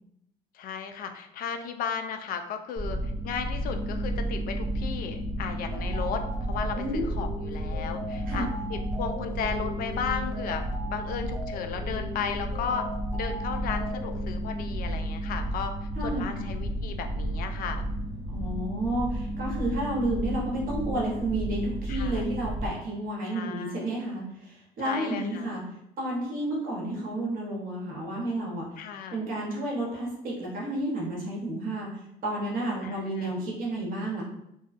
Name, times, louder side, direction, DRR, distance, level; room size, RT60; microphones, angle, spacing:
voice 1, 0.5-10.6 10.9-15.7 16.0-17.9 21.9-22.3 23.3-24.0 24.8-25.5 28.8-29.2 32.8-33.3, left 6 dB, 60° left, 7 dB, 0.4 m, -35 dB
sound 1, 2.8-22.7, right 1 dB, 20° right, 1.1 m, -32 dB
sound 2, 5.7-14.2, right 1 dB, 25° left, 0.8 m, -41 dB
voice 2, 16.0-16.5 18.3-25.6 26.0-28.7 29.1-31.9 32.2-34.2, right 1 dB, 55° right, -3 dB, 0.9 m, -31 dB
2.6 x 2.2 x 2.4 m, 0.79 s
cardioid pair, 110°, 17 cm